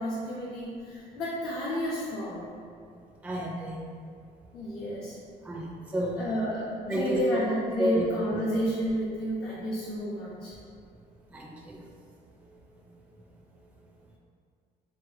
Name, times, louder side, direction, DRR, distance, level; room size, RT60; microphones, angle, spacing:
voice 1, 0.0-2.5 4.5-5.2 6.2-10.5, equal, 90° left, -12 dB, 1.1 m, -31 dB
voice 2, 3.2-3.8 5.4-6.2 6.9-7.4 7.8-8.0 11.3-11.8, right 1 dB, 10° right, -2 dB, 0.4 m, -30 dB
4.0 x 3.1 x 2.5 m, 2.3 s
cardioid pair, 110°, 17 cm